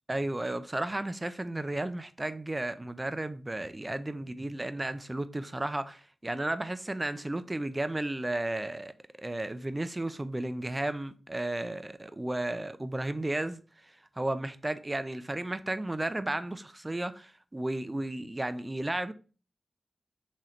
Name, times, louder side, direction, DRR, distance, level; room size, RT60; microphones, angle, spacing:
voice 1, 0.1-8.9 9.2-13.6 14.2-19.1, right 1 dB, 25° right, 0.5 m, -33 dB
3.8 x 3.1 x 4.3 m
cardioid pair, 50°, 0 cm